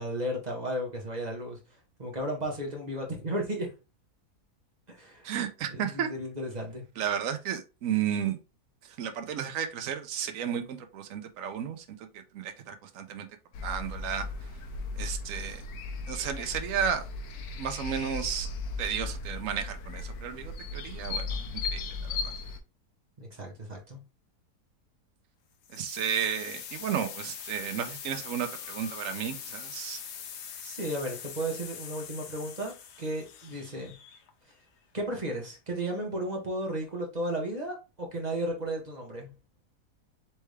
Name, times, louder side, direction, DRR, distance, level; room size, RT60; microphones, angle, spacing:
voice 1, 0.0-1.6 2.0-3.7 4.9-5.3 5.7-6.8 23.2-24.0 30.6-33.9 34.9-39.3, right 1 dB, 30° right, 1.2 m, -34 dB
voice 2, 5.2-6.1 7.0-8.4 9.0-13.3 13.6-14.3 14.9-15.6 16.1-17.0 17.6-18.5 18.8-22.4 25.7-30.0, right 8 dB, 65° right, 1.0 m, -33 dB
sound 1, 13.5-22.6, left 3 dB, 80° left, 1.2 m, -36 dB
sound 2, 25.6-34.5, left 7 dB, 60° left, 0.8 m, -43 dB
4.3 x 3.5 x 3.3 m
omnidirectional pair, 1.7 m